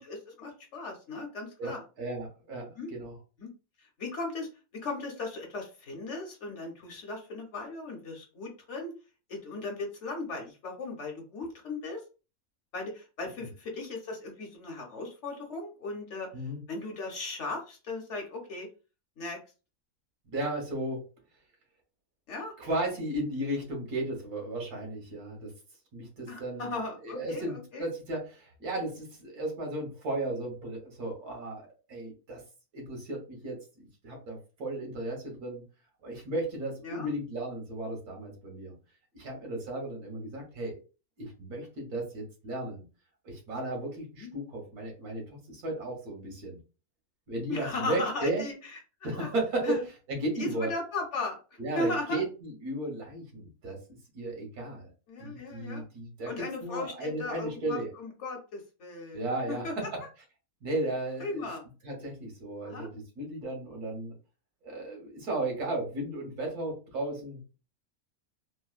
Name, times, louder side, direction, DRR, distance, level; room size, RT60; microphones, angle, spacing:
voice 1, 0.0-1.8 2.8-2.9 3.4-3.5 3.8-4.5 4.7-8.9 9.3-12.0 12.7-16.3 16.7-18.7 19.2-19.4 22.3-22.5 26.3-27.9 36.8-37.1 44.2-44.3 47.5-48.8 49.2-49.3 49.6-49.8 50.3-52.2 55.1-55.8 56.3-59.7 61.2-61.6 62.6-62.9, left 3 dB, 55° left, 1 dB, 1.0 m, -37 dB
voice 2, 1.6-3.2 16.3-16.6 20.3-21.0 22.6-25.5 25.9-26.8 27.0-32.4 32.7-35.6 36.0-38.7 39.1-40.8 41.2-42.8 43.3-46.6 47.3-48.4 49.0-49.8 50.1-50.7 51.6-54.9 55.2-56.3 56.6-57.9 59.1-60.0 60.6-61.5 61.8-64.1 64.6-67.4, right 1 dB, 90° right, 1 dB, 1.7 m, -35 dB
3.7 x 2.1 x 2.4 m, 0.33 s
omnidirectional pair, 1.6 m